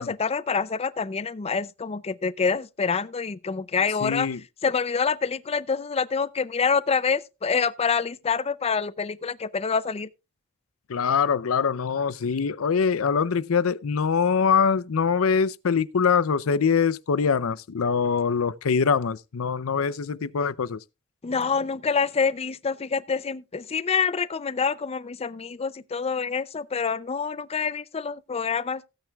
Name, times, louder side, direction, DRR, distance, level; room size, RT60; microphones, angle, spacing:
voice 1, 0.0-4.3 4.6-10.1 21.2-28.8, left 5 dB, 30° left, 0.5 m, -26 dB
voice 2, 4.0-4.4 10.9-20.8, left 6 dB, 90° left, 0.6 m, -23 dB
17.0 x 9.0 x 2.3 m
head